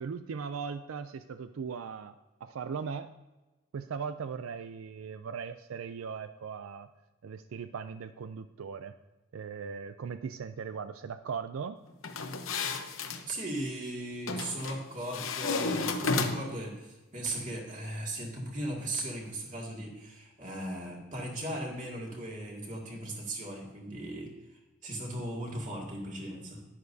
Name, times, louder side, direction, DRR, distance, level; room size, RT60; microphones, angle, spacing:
voice 1, 0.0-2.1 2.4-3.1 3.7-6.9 7.2-9.0 9.3-11.8, right 6 dB, 85° right, 10 dB, 0.4 m, -38 dB
sound 1, 12.0-13.2 14.3-14.8 15.1-16.6, left 4 dB, 80° left, 0.9 m, -32 dB
voice 2, 13.3-26.7, right 1 dB, 40° right, -1 dB, 2.2 m, -38 dB
11.0 x 10.5 x 2.7 m, 1.1 s
head